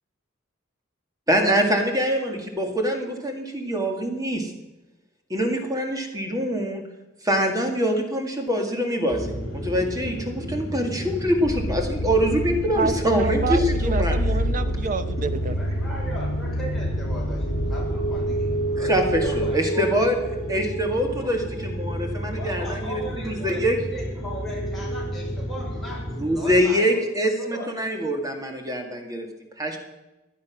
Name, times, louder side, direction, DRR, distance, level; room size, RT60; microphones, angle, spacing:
voice 1, 1.3-4.5 5.3-6.9 7.2-14.4 18.8-20.1 20.5-23.8 26.2-29.3 29.6-29.8, equal, 15° right, 3 dB, 2.0 m, -24 dB
sound 1, 9.1-26.6, right 1 dB, 55° left, 3.8 m, -31 dB
sound 2, 11.5-19.6, equal, 70° left, 2.3 m, -28 dB
voice 2, 12.8-15.6, right 4 dB, 40° right, 11 dB, 0.9 m, -28 dB
voice 3, 15.5-20.0 21.2-21.3 22.4-27.0 27.4-27.7, equal, ahead, -6 dB, 6.0 m, -38 dB
16.5 x 10.5 x 6.0 m, 1.0 s
head